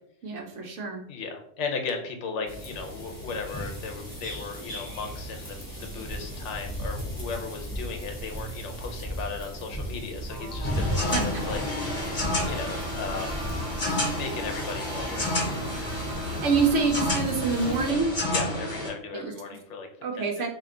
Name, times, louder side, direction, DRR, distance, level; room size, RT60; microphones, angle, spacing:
voice 1, 0.2-1.0 11.1-11.2 16.2-18.1 19.1-19.3 20.0-20.5, right 4 dB, 70° right, 2 dB, 1.1 m, -26 dB
voice 2, 1.1-13.5 14.0-15.5 18.3-19.9 20.1-20.3, left 4 dB, 70° left, 4 dB, 1.0 m, -36 dB
sound 1, 2.5-17.9, equal, 15° left, 1.0 m, -36 dB
sound 2, 10.3-17.1, right 1 dB, 25° right, 0.7 m, -41 dB
sound 3, 10.6-18.9, left 1 dB, 40° left, 1.4 m, -30 dB
3.3 x 2.8 x 3.8 m, 0.66 s
omnidirectional pair, 1.3 m